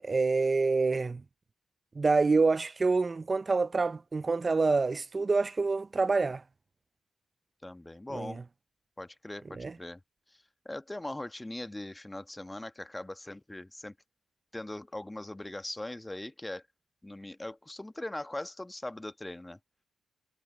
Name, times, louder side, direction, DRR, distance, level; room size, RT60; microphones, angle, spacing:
voice 1, 0.0-1.2 2.0-6.4 8.1-8.4 9.5-9.7, right 3 dB, 40° right, 0.5 m, -27 dB
voice 2, 7.6-8.4 9.0-10.0 10.6-13.9 14.5-16.6 17.0-19.6, left 1 dB, 20° left, 1.2 m, -40 dB
supercardioid pair, 45°, 0 cm